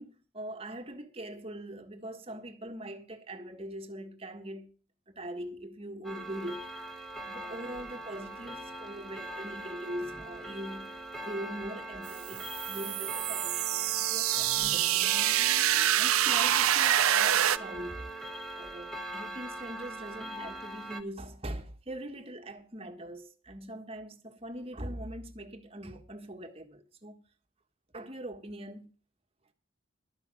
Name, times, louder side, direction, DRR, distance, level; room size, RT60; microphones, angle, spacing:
voice 1, 0.0-4.8 5.1-6.7 7.3-15.3 16.0-18.1 18.6-27.2 27.9-28.9, right 1 dB, 25° right, 1.5 m, -42 dB
Clock, 6.0-21.0, right 1 dB, ahead, 1.2 m, -41 dB
sound 1, 12.1-17.6, right 12 dB, 85° right, 0.6 m, -26 dB
12.5 x 5.8 x 9.0 m
head